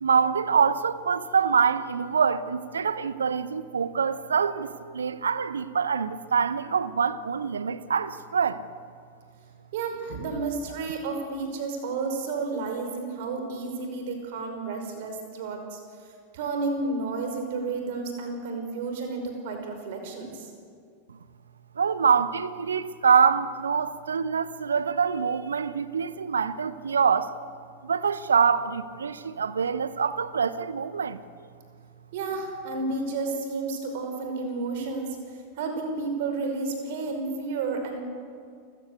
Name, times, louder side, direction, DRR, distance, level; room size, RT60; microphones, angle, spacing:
voice 1, 0.0-8.6 21.8-27.3 27.8-31.2, right 6 dB, 70° right, 1.1 m, -25 dB
voice 2, 9.7-15.8 16.3-20.5 32.1-35.1 35.6-38.0, right 3 dB, 50° right, 5.3 m, -31 dB
28.5 x 15.5 x 8.2 m
figure-of-eight pair, 90°, 0 cm